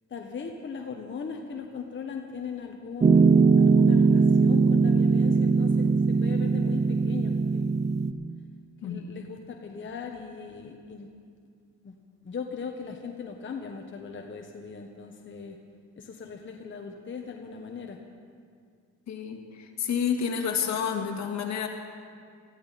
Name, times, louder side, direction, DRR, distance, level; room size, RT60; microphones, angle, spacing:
voice 1, 0.1-7.7 8.8-11.1 11.8-11.9 12.2-15.6 16.0-18.0, left 6 dB, 40° left, 2 dB, 1.2 m, -39 dB
Piano, 3.0-8.1, right 4 dB, 25° right, 0.6 m, -20 dB
voice 2, 19.1-19.4 19.8-21.7, left 7 dB, 65° left, 3 dB, 1.8 m, -29 dB
19.0 x 14.0 x 4.2 m, 2.2 s
cardioid pair, 90°, 30 cm